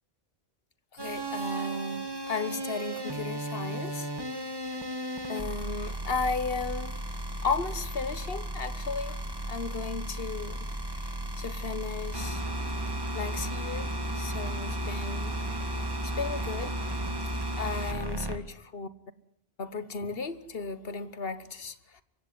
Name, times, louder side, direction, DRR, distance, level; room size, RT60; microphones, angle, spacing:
voice 1, 0.9-4.1 5.3-7.0 7.4-10.7 11.0-12.4 13.1-15.4 16.0-17.1 17.6-18.9 19.6-22.0, left 4 dB, 65° left, 1.5 m, -35 dB
sound 1, 1.0-18.4, right 1 dB, 20° right, 2.1 m, -34 dB
24.0 x 16.0 x 9.5 m
omnidirectional pair, 1.1 m